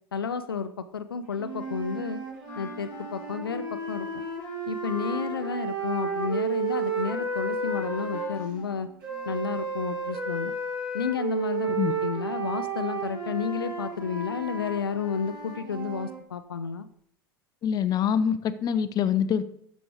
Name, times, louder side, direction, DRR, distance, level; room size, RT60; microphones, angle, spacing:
voice 1, 0.1-2.2 2.6-4.1 4.7-8.9 9.3-10.5 10.9-16.9, left 6 dB, 80° left, 11 dB, 0.5 m, -31 dB
sound 1, 1.4-8.3 9.0-16.2, right 4 dB, 65° right, 3.8 m, -32 dB
Wind instrument woodwind instrument, 2.4-9.7, left 2 dB, 15° left, 2.0 m, -44 dB
voice 2, 17.6-19.4, left 8 dB, 35° left, 12 dB, 0.7 m, -25 dB
11.5 x 6.2 x 3.4 m, 0.68 s
figure-of-eight pair, 80°, 12 cm